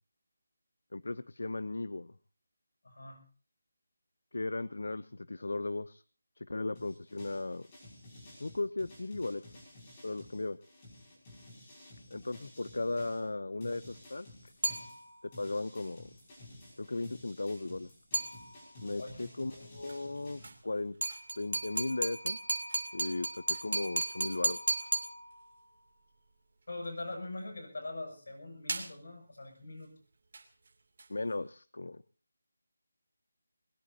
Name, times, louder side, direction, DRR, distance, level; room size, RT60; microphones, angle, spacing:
voice 1, 0.9-2.1 4.3-6.0 6.4-7.7 8.4-9.4 10.0-10.6 12.1-14.3 15.4-16.1 16.8-17.9 18.8-21.0 21.3-22.4 22.9-24.9 31.1-32.0, left 2 dB, 80° left, 17 dB, 0.7 m, -36 dB
voice 2, 2.8-3.2 19.0-19.3 26.7-29.9, left 2 dB, 55° left, 5 dB, 7.2 m, -42 dB
sound 1, 6.8-13.2 13.6-20.5, left 1 dB, 15° left, 5.8 m, -53 dB
sound 2, 14.6-15.4 18.1-18.9 21.0-25.7, right 3 dB, 65° right, 2.8 m, -35 dB
sound 3, 18.9-31.5, right 3 dB, 40° right, 2.8 m, -50 dB
22.0 x 20.5 x 2.8 m, 0.36 s
figure-of-eight pair, 180°, 0 cm